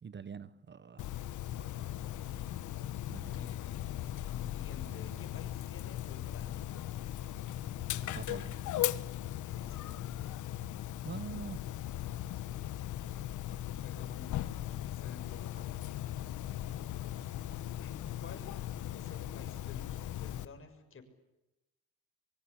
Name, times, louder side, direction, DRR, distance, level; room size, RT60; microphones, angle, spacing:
voice 1, 0.0-1.2 3.1-3.3 8.0-8.6 11.0-11.6, right 6 dB, 35° right, 16 dB, 1.2 m, -44 dB
Dog, 1.0-20.4, left 12 dB, 80° left, 1.4 m, -38 dB
Bowed string instrument, 1.4-6.7, right 3 dB, 10° right, 4.4 m, -65 dB
voice 2, 1.5-2.4 3.3-6.8 9.5-10.1 13.0-15.8 17.7-18.5 18.9-21.0, left 4 dB, 45° left, 7 dB, 6.6 m, -53 dB
24.5 x 24.5 x 8.6 m, 0.94 s
cardioid pair, 90°, 30 cm